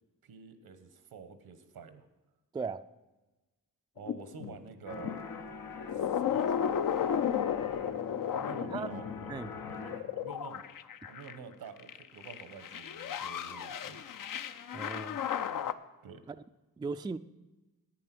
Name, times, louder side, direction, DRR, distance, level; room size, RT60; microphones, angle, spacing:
voice 1, 0.2-2.1 4.0-5.2 5.9-6.8 8.4-10.6 11.1-14.2 16.0-16.2, right 5 dB, 85° right, 11 dB, 1.1 m, -49 dB
voice 2, 2.5-2.9 8.7-8.9 9.3-9.5 14.7-15.2 16.3-16.4 16.8-17.2, right 4 dB, 15° right, 11 dB, 0.3 m, -37 dB
sound 1, 4.0-5.2 5.7-11.4 11.8-15.7, left 8 dB, 65° left, 0.6 m, -34 dB
sound 2, 4.9-10.0, left 5 dB, 90° left, 1.2 m, -45 dB
10.0 x 8.8 x 6.0 m, 1.1 s
cardioid pair, 65°, 36 cm